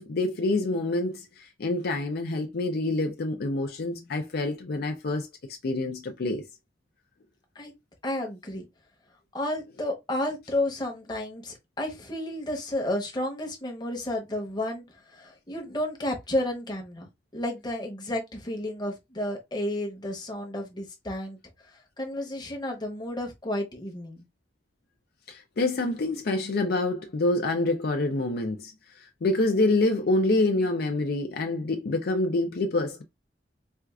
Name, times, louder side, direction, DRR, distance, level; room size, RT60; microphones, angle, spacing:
voice 1, 0.0-5.3 5.6-6.4 25.3-33.0, left 2 dB, 60° left, 0.5 m, -27 dB
voice 2, 8.0-8.6 9.3-21.4 21.6-24.2, left 1 dB, 25° left, 0.9 m, -32 dB
4.4 x 2.4 x 2.3 m
head